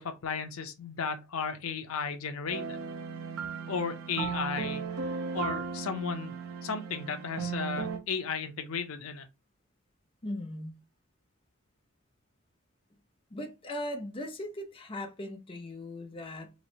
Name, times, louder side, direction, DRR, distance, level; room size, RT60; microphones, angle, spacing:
voice 1, 0.0-2.8 3.7-4.8 5.3-9.3, left 5 dB, 75° left, 0.6 m, -35 dB
sound 1, 2.5-8.0, right 5 dB, 90° right, 0.7 m, -36 dB
voice 2, 10.2-10.8 13.3-16.5, left 1 dB, 25° left, 0.6 m, -38 dB
3.1 x 3.0 x 2.7 m
head